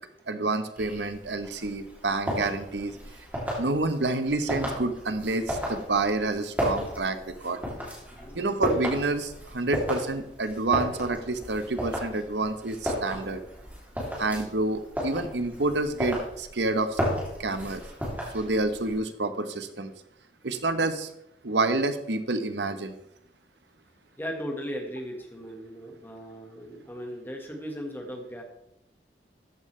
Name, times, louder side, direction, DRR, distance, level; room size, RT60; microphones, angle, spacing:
voice 1, 0.3-2.9 3.6-7.6 8.3-13.4 14.2-17.0 17.4-17.8 18.3-19.9 20.4-21.1 21.4-23.0, right 2 dB, 85° right, 10 dB, 1.0 m, -28 dB
sound 1, 0.8-19.0, equal, 10° right, 3.0 m, -34 dB
voice 2, 24.2-28.4, equal, 10° left, 2 dB, 1.6 m, -37 dB
13.5 x 8.8 x 3.3 m, 0.78 s
head